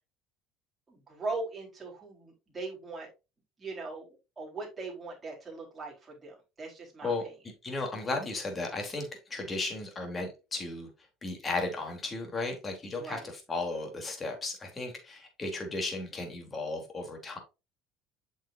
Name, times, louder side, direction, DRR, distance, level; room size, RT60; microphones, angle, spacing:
voice 1, 0.9-3.1 3.6-7.4 13.0-13.3, right 3 dB, 20° right, -2 dB, 4.2 m, -40 dB
voice 2, 7.6-10.9 11.2-17.4, left 3 dB, 25° left, 3 dB, 3.3 m, -35 dB
8.2 x 6.5 x 2.6 m, 0.27 s
supercardioid pair, 105°, 0 cm